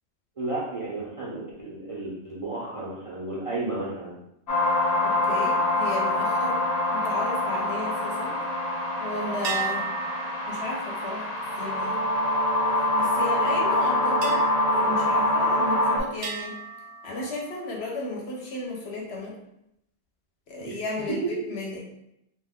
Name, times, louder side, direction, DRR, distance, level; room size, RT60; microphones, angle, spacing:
voice 1, 0.4-4.2 20.6-20.7, right 2 dB, 40° right, -7 dB, 0.5 m, -33 dB
sound 1, 4.5-16.0, left 1 dB, 50° left, 0.5 m, -25 dB
voice 2, 5.0-6.6 6.9-8.4 9.0-9.9 10.5-11.3 11.6-12.0 12.7-14.4 14.7-16.5 17.0-19.3 20.5-21.8, left 2 dB, 70° left, -2 dB, 1.0 m, -34 dB
sound 2, 9.4-13.1 14.2-15.8 16.2-17.9, right 5 dB, 80° right, 0.8 m, -37 dB
2.5 x 2.2 x 3.4 m, 0.82 s
omnidirectional pair, 1.1 m